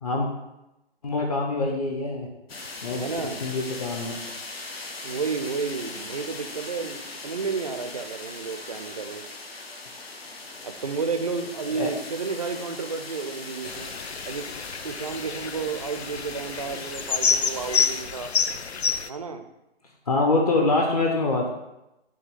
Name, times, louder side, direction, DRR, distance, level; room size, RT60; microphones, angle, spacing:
voice 1, 1.0-2.3 2.8-3.0 3.4-4.1 11.7-11.9 20.1-21.5, left 2 dB, 35° left, 0 dB, 0.7 m, -24 dB
sound 1, 2.5-18.0, left 3 dB, 65° left, 0.9 m, -40 dB
voice 2, 3.0-3.4 5.0-9.2 10.6-13.9 14.3-14.5 14.8-18.3 19.1-19.4, right 5 dB, 35° right, 8 dB, 0.4 m, -31 dB
sound 2, 13.6-19.1, left 6 dB, 90° left, 0.5 m, -28 dB
6.5 x 2.7 x 5.3 m, 0.93 s
figure-of-eight pair, 135°, 32 cm